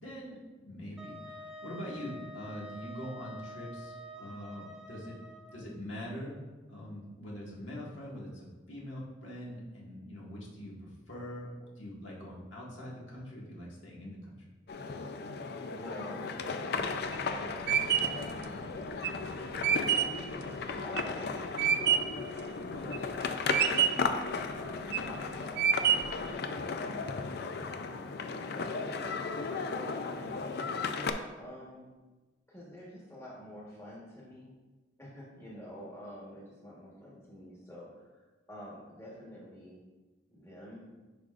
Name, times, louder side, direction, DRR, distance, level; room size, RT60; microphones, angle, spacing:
voice 1, 0.0-5.2 5.5-6.3 6.7-11.5 11.8-14.4, equal, 75° left, -5 dB, 1.8 m, -43 dB
Wind instrument woodwind instrument, 1.0-5.7, equal, 5° right, 0.7 m, -47 dB
sound 1, 14.7-31.1, left 4 dB, 55° left, 0.4 m, -36 dB
voice 2, 15.7-18.7 19.7-21.3 21.6-24.0 24.5-27.8 28.2-30.6 31.4-31.9 32.5-34.5 35.0-39.8 40.3-40.8, equal, 15° left, -5 dB, 1.3 m, -48 dB
sound 2, 16.8-22.2 22.7-23.2 23.5-24.2 24.7-25.2 25.6-26.3, right 8 dB, 55° right, 0.4 m, -28 dB
10.5 x 4.9 x 2.5 m, 1.2 s
head